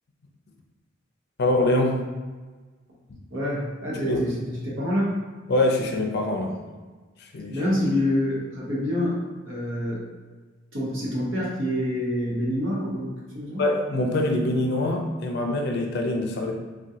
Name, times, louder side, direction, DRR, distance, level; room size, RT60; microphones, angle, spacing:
voice 1, 1.4-2.0 4.1-4.2 5.5-6.6 7.2-7.6 13.6-16.5, left 1 dB, 55° left, 2 dB, 0.5 m, -24 dB
voice 2, 3.3-5.2 7.5-9.2 9.5-10.0 10.7-13.6, left 1 dB, 75° right, -6 dB, 0.9 m, -27 dB
3.5 x 2.3 x 2.7 m, 1.4 s
head